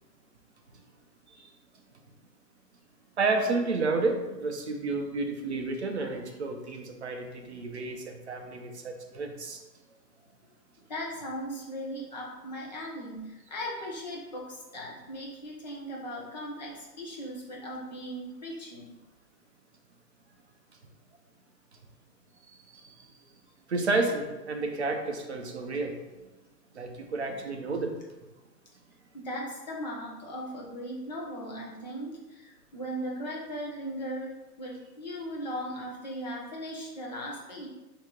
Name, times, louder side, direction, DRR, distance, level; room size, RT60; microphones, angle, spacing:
voice 1, 3.2-9.6 22.7-23.0 23.7-26.0 26.7-27.9, right 3 dB, 45° right, 3 dB, 0.5 m, -31 dB
voice 2, 10.9-18.9 29.1-37.7, equal, 25° left, -3 dB, 0.7 m, -38 dB
5.5 x 2.8 x 3.0 m, 1.1 s
hypercardioid pair, 165°, 49 cm